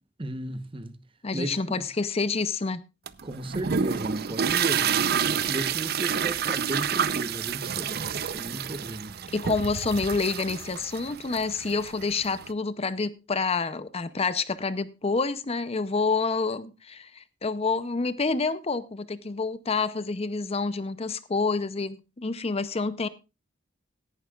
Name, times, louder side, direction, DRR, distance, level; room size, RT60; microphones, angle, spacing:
voice 1, 0.2-0.9 1.3-1.8 3.2-9.1, right 1 dB, 30° right, 1.0 m, -35 dB
voice 2, 1.2-2.8 9.3-23.1, left 4 dB, 30° left, 0.6 m, -28 dB
sound 1, 3.1-12.5, right 7 dB, 55° right, 0.6 m, -29 dB
17.5 x 11.5 x 2.4 m
head